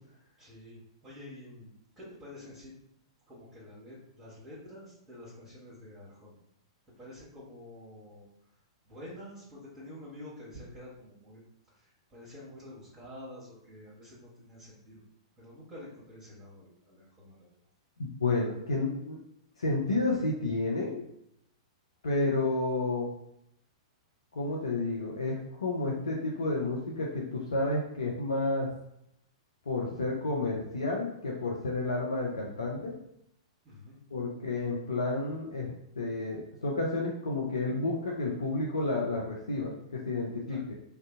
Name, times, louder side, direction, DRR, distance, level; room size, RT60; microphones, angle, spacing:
voice 1, 0.4-2.7 3.3-6.3 7.0-8.3 8.8-11.4 11.7-15.0 15.4-17.5 33.6-34.0 40.5-40.6, left 1 dB, 15° right, -8 dB, 1.2 m, -48 dB
voice 2, 18.0-19.2 19.6-21.0 22.0-23.1 24.3-28.7 29.7-32.9 34.1-40.7, left 2 dB, 70° left, -2 dB, 0.5 m, -31 dB
2.6 x 2.3 x 3.6 m, 0.76 s
figure-of-eight pair, 105°, 3 cm